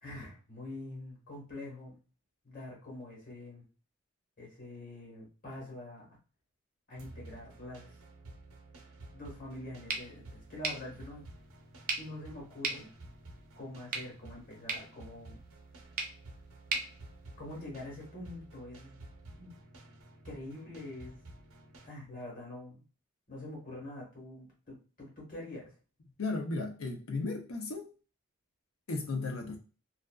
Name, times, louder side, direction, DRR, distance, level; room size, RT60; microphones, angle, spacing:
voice 1, 0.0-2.0 2.4-3.6 4.4-6.2 6.9-7.9 9.1-11.2 11.9-12.9 13.6-15.4 17.4-19.0 19.4-19.6 20.2-21.2 21.8-22.8 23.3-25.8, left 1 dB, 40° left, 1.2 m, -45 dB
sound 1, 7.0-21.9, right 2 dB, 85° right, 0.7 m, -52 dB
sound 2, 9.9-17.9, right 4 dB, 45° right, 0.5 m, -41 dB
voice 2, 26.2-27.9 28.9-29.6, left 3 dB, 80° left, 0.6 m, -35 dB
2.4 x 2.3 x 2.2 m
head